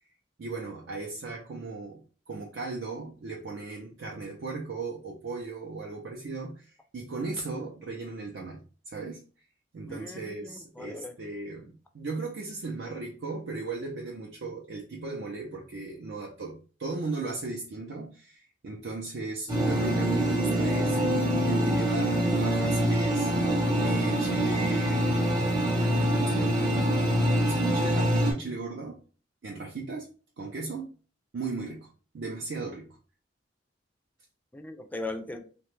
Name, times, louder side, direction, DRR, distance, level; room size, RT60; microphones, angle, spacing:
voice 1, 0.4-9.2 9.7-23.3 23.8-26.9 27.4-29.0 29.4-30.1 30.4-30.9 31.3-31.9 32.1-33.0, right 3 dB, 75° right, 0.5 m, -37 dB
voice 2, 9.9-11.1 34.5-35.4, left 2 dB, 10° left, 0.3 m, -38 dB
sound 1, 19.5-28.3, equal, 20° right, 0.8 m, -25 dB
2.9 x 2.2 x 3.1 m
head